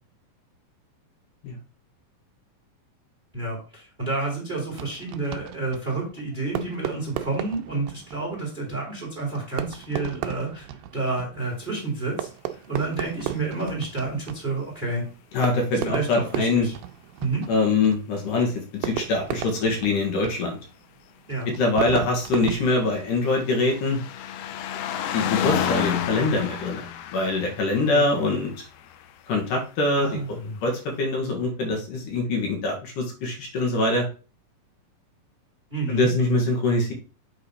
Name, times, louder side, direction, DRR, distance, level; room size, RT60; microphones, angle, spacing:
voice 1, 3.3-15.0 15.8-16.7 17.2-17.4 21.3-21.5 27.9-28.1 30.0-30.6 35.7-36.1, right 3 dB, 15° right, -1 dB, 2.4 m, -30 dB
Fireworks, 4.7-23.5, right 12 dB, 90° right, 2.5 m, -36 dB
voice 2, 15.3-16.7 17.5-20.6 21.5-24.0 25.1-28.7 29.3-34.1 35.9-36.9, left 2 dB, 65° left, 1 dB, 3.0 m, -24 dB
sound 1, 22.5-29.2 30.2-30.3, left 9 dB, 85° left, 2.6 m, -31 dB
8.0 x 3.9 x 5.0 m, 0.36 s
omnidirectional pair, 4.1 m